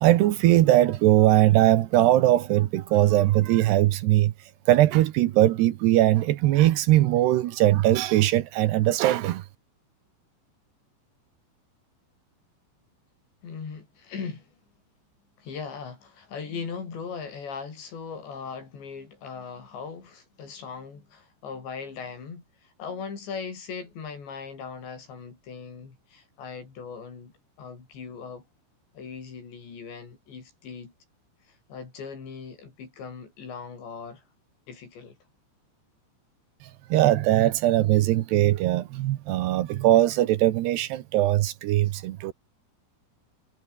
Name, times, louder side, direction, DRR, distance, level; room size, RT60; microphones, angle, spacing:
voice 1, 0.0-4.3 4.7-9.4 36.9-42.3, right 14 dB, 75° right, 3.0 m, -20 dB
voice 2, 13.4-14.5 15.4-28.4 28.9-30.9 31.5-34.2 34.7-35.2, left 5 dB, 70° left, 8.1 m, -39 dB
omnidirectional pair, 5.2 m